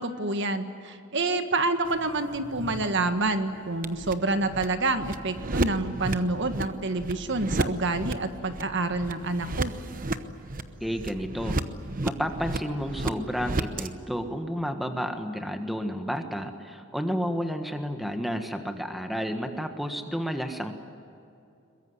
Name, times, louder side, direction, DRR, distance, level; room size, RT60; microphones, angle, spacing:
voice 1, 0.0-9.7, right 2 dB, 55° right, 8 dB, 1.6 m, -28 dB
sound 1, 1.8-13.9, right 2 dB, 40° right, 1.0 m, -34 dB
voice 2, 10.8-11.6 12.0-20.8, equal, ahead, 5 dB, 1.4 m, -31 dB
22.5 x 22.0 x 9.8 m, 2.5 s
head